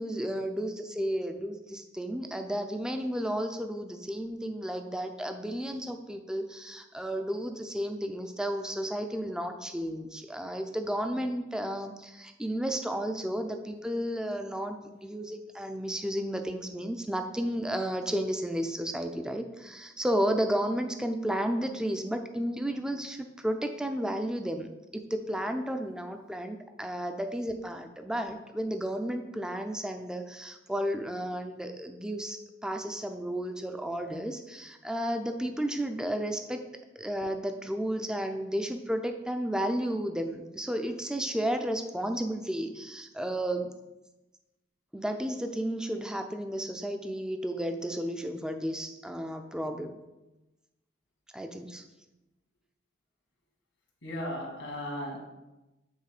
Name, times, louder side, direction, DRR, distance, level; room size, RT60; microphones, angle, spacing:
voice 1, 0.0-36.6 37.0-43.7 44.9-50.0 51.3-51.8, equal, 5° right, 6 dB, 0.4 m, -33 dB
voice 2, 54.0-55.3, left 1 dB, 85° left, 1 dB, 1.6 m, -36 dB
8.1 x 3.5 x 4.9 m, 1.0 s
head